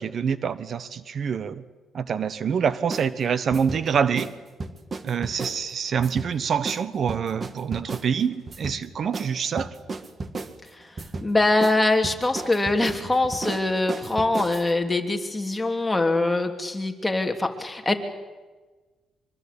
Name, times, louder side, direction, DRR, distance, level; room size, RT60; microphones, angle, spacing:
voice 1, 0.0-1.6 1.9-4.3 5.0-9.8, right 7 dB, 55° right, 14 dB, 1.1 m, -26 dB
sound 1, 2.9-3.1 3.5-3.8 4.2-4.3 4.6-5.6 6.0-6.3 6.7-6.8 7.1-8.1 8.5-8.8 9.1-9.3 9.6-10.5 11.0-11.3 11.6-11.8 12.0-14.7, right 3 dB, 35° right, 1.9 m, -33 dB
voice 2, 11.2-17.9, left 2 dB, 15° left, 4 dB, 3.0 m, -23 dB
25.0 x 24.0 x 8.5 m, 1.3 s
cardioid pair, 90°, 0 cm